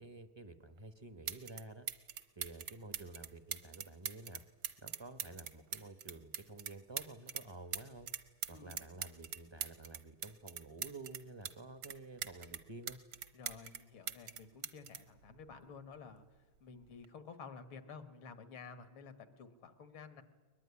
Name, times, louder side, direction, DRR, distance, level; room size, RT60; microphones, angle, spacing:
voice 1, 0.0-1.9 2.4-4.4 4.8-8.1 8.5-13.0, right 2 dB, 30° right, 10 dB, 0.5 m, -51 dB
sound 1, 0.8-0.9 1.3-1.6 1.9-7.4 7.7-11.5 11.8-13.8 14.1-15.9 16.8-17.1, right 9 dB, 70° right, 1.8 m, -42 dB
voice 2, 8.5-8.8 13.3-16.3 16.6-20.2, left 5 dB, 90° left, 10 dB, 2.5 m, -52 dB
21.5 x 21.5 x 9.8 m, 1.4 s
omnidirectional pair, 2.2 m